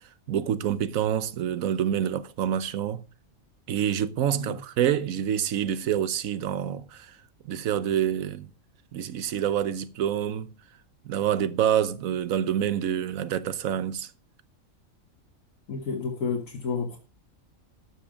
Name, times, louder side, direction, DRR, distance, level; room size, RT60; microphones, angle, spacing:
voice 1, 0.3-3.0 3.7-7.2 7.4-8.5 8.9-10.5 11.0-14.1, right 9 dB, 85° right, 1.2 m, -27 dB
voice 2, 15.7-17.0, left 5 dB, 75° left, 1.6 m, -31 dB
12.0 x 6.2 x 5.0 m
omnidirectional pair, 1.4 m